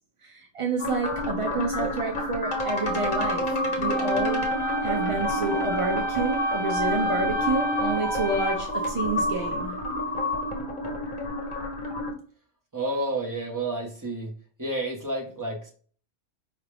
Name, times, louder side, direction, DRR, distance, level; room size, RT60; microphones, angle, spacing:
voice 1, 0.2-9.7, right 3 dB, 50° right, 0.3 m, -29 dB
sound 1, 0.8-12.1, left 1 dB, 45° left, 1.0 m, -29 dB
sound 2, 3.9-8.9, right 2 dB, 25° left, 0.4 m, -30 dB
voice 2, 12.7-14.3 14.6-15.7, right 2 dB, 15° right, 0.9 m, -30 dB
4.8 x 2.4 x 3.3 m
omnidirectional pair, 1.2 m